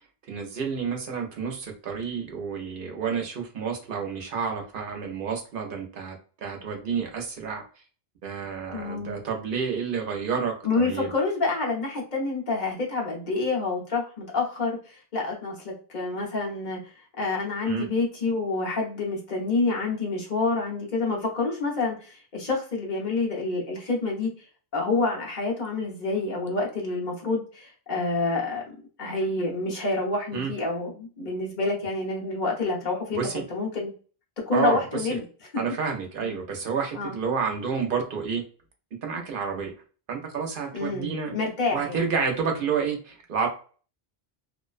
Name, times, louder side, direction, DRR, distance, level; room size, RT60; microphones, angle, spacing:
voice 1, 0.3-6.2 6.4-7.6 8.2-11.1 17.7-17.9 30.3-30.5 33.2-33.4 34.5-34.8 35.6-38.4 39.0-39.7 40.1-41.3 41.7-43.5, right 6 dB, 60° right, 2 dB, 0.8 m, -29 dB
voice 2, 8.7-9.2 10.6-24.4 24.7-28.6 29.0-33.9 34.5-35.2 36.2-36.4 36.9-37.2 40.7-42.1, left 3 dB, 50° left, -3 dB, 1.0 m, -28 dB
2.5 x 2.1 x 2.4 m, 0.39 s
omnidirectional pair, 1.0 m